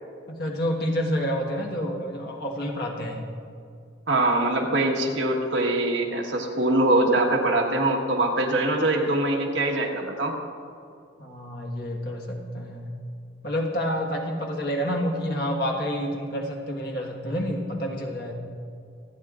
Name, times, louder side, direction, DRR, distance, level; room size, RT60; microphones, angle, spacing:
voice 1, 0.3-3.3 11.2-12.9 13.4-18.3, equal, 55° left, 0 dB, 1.5 m, -29 dB
voice 2, 4.1-10.3, right 2 dB, 75° right, 1 dB, 1.4 m, -23 dB
25.5 x 8.9 x 2.5 m, 2.4 s
head